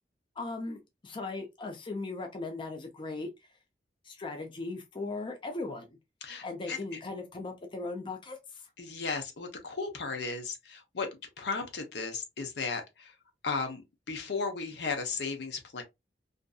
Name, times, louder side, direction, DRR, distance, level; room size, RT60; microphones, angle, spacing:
voice 1, 0.4-3.3 4.0-6.0 6.4-8.7, left 3 dB, 30° left, 0.5 m, -38 dB
voice 2, 6.2-6.8 8.8-11.1 11.4-13.1 13.4-13.8 14.1-15.8, left 4 dB, 70° left, 0.7 m, -35 dB
2.6 x 2.5 x 2.3 m
head